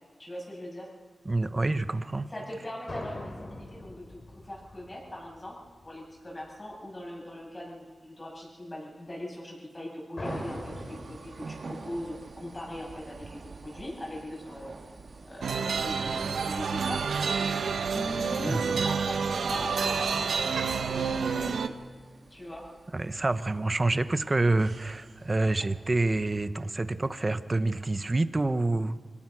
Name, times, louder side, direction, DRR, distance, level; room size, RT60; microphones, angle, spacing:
voice 1, 0.2-0.9 2.3-5.6 5.8-14.8 15.3-17.5 17.9-21.8 22.3-22.6, left 1 dB, 25° left, -2 dB, 7.6 m, -40 dB
voice 2, 1.3-2.3 18.5-18.6 22.9-28.9, right 2 dB, 30° right, 12 dB, 0.9 m, -27 dB
sound 1, 2.9-5.9 10.2-11.2, left 1 dB, 45° left, 3.5 m, -41 dB
sound 2, 10.2-26.5, right 3 dB, 65° right, 1.9 m, -48 dB
sound 3, 15.4-21.7, right 5 dB, 90° right, 0.9 m, -29 dB
24.5 x 17.5 x 6.2 m, 1.5 s
wide cardioid pair, 75°, 0 cm